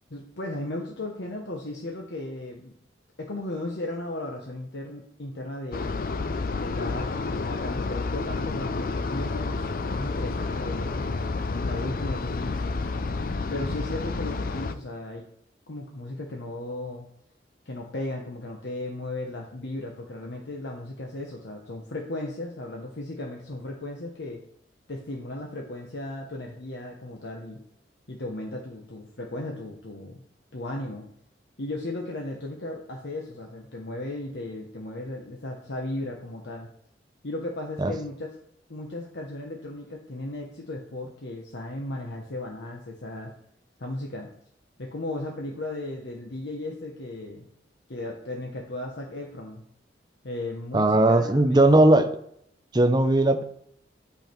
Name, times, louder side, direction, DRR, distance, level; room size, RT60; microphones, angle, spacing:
voice 1, 0.1-2.7 3.2-5.9 6.6-12.8 13.5-15.2 15.7-17.1 17.6-24.4 24.9-27.6 28.1-30.2 30.5-31.0 31.6-36.7 37.2-38.3 38.7-43.3 43.8-44.3 44.8-47.4 47.9-49.6 50.2-51.8, left 2 dB, 75° left, 0 dB, 1.1 m, -36 dB
sound 1, 5.7-14.7, left 3 dB, 50° left, 0.4 m, -30 dB
voice 2, 50.7-52.1 52.7-53.4, right 1 dB, 25° right, 7 dB, 0.6 m, -18 dB
8.7 x 5.7 x 4.5 m, 0.70 s
head